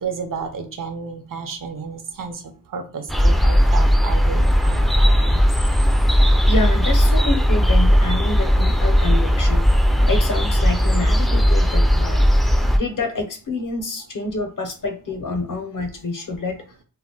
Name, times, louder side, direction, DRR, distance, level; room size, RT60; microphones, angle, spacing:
voice 1, 0.0-2.4 2.7-5.4, right 5 dB, 65° right, 6 dB, 0.6 m, -32 dB
sound 1, 3.1-12.8, equal, ahead, 0.3 m, -17 dB
voice 2, 6.5-9.7 10.1-12.3 12.7-16.6, left 2 dB, 65° left, 5 dB, 0.7 m, -27 dB
2.2 x 2.1 x 3.7 m, 0.40 s
wide cardioid pair, 105°, 34 cm